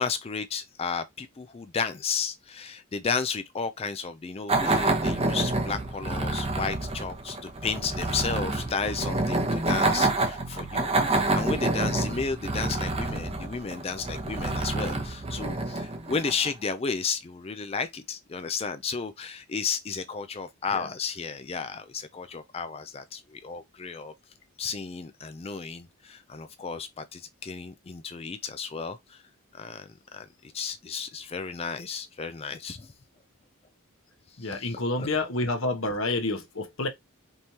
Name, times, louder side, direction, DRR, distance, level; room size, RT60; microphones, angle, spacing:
voice 1, 0.0-24.1 24.6-29.2 29.5-32.9 34.4-35.1, left 5 dB, 25° left, 0.4 m, -33 dB
sound 1, 4.5-16.7, right 2 dB, 25° right, 0.8 m, -28 dB
voice 2, 34.4-36.9, left 2 dB, 65° left, 1.2 m, -28 dB
5.3 x 3.1 x 2.8 m
head